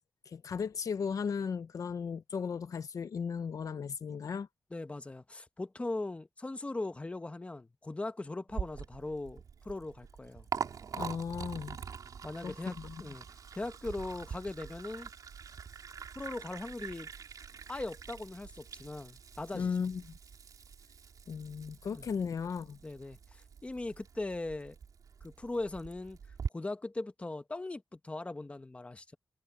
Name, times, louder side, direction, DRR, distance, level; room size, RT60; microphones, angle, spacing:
voice 1, 0.3-4.5 10.9-11.8 12.4-13.0 19.5-20.0 21.3-22.8, left 6 dB, 70° left, 0.8 m, -36 dB
voice 2, 4.7-10.5 12.2-13.2 13.5-15.1 16.1-17.1 17.7-19.7 21.9-22.1 22.8-24.8 25.2-26.2 26.5-29.2, left 2 dB, 20° left, 1.2 m, -39 dB
Liquid, 8.5-26.5, right 6 dB, 80° right, 4.2 m, -44 dB
wide cardioid pair, 125°, 6 cm